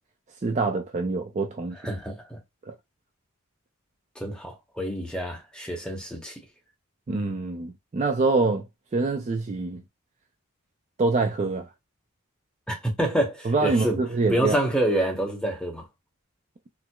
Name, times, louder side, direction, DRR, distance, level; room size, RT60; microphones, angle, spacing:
voice 1, 0.4-1.8 7.1-8.7 8.9-9.8 11.0-11.7 13.5-14.6, right 3 dB, 30° right, 0.3 m, -25 dB
voice 2, 1.8-2.4 4.2-6.4 12.7-14.0 14.3-15.9, right 1 dB, 5° left, 0.7 m, -27 dB
4.4 x 2.0 x 2.2 m
head